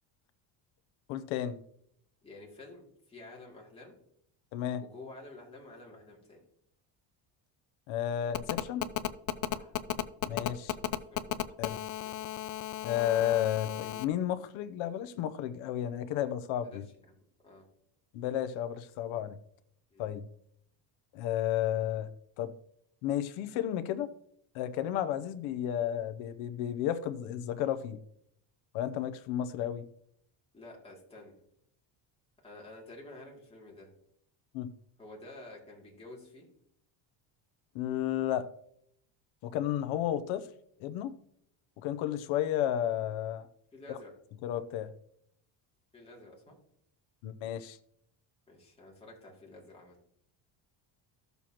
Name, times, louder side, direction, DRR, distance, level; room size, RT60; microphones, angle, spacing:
voice 1, 1.1-1.6 4.5-4.8 7.9-8.9 10.2-10.7 11.6-11.8 12.8-16.8 18.1-19.4 20.0-20.2 21.1-22.1 22.4-22.5 23.0-24.1 24.5-28.0 28.7-29.9 34.5-34.7 37.7-38.5 39.4-40.5 40.8-41.1 41.8-43.5 43.9-44.0 44.4-44.9 47.2-47.8, left 11 dB, 80° left, 11 dB, 0.8 m, -32 dB
voice 2, 2.2-3.9 4.8-6.4 9.5-9.7 10.8-10.9 11.1-12.2 16.6-17.1 17.4-17.6 19.9-20.1 30.5-31.4 32.4-33.9 35.0-36.5 43.7-44.1 45.9-46.5 48.5-50.0, left 2 dB, 10° left, -3 dB, 2.6 m, -50 dB
Telephone, 8.3-14.0, left 13 dB, 45° left, 0.6 m, -34 dB
14.0 x 6.9 x 3.0 m, 0.69 s
cardioid pair, 140°, 46 cm